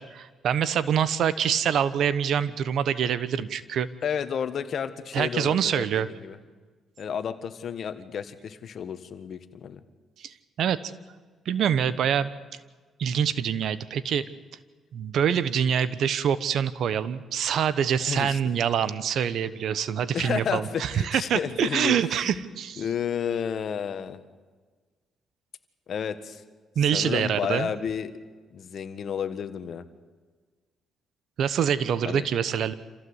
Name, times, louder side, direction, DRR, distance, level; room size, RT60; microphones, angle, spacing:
voice 1, 0.0-3.9 5.1-6.1 10.2-10.8 11.4-12.3 13.0-14.3 14.9-22.8 26.7-27.7 31.4-32.7, right 8 dB, 70° right, 15 dB, 1.1 m, -25 dB
voice 2, 4.0-6.4 7.0-9.8 18.0-18.4 20.1-22.0 22.2-22.4 22.8-24.2 25.9-26.4 26.9-28.1 28.5-29.8 32.0-32.2, left 7 dB, 60° left, 11 dB, 1.5 m, -31 dB
27.0 x 15.5 x 8.1 m, 1.4 s
cardioid pair, 90°, 0 cm